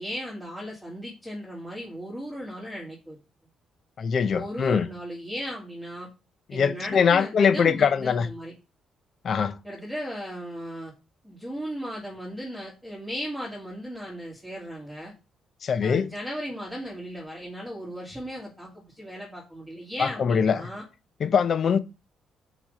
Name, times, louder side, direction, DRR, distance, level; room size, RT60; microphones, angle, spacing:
voice 1, 0.0-3.2 4.3-6.1 6.5-8.5 9.6-10.9 11.2-15.1 15.8-20.8, equal, ahead, 2.0 m, -36 dB
voice 2, 4.0-4.9 6.5-8.3 9.2-9.6 15.6-16.1 20.0-20.7 21.2-21.8, left 6 dB, 45° left, 0.7 m, -22 dB
6.1 x 5.1 x 5.4 m
cardioid pair, 150°, 0 cm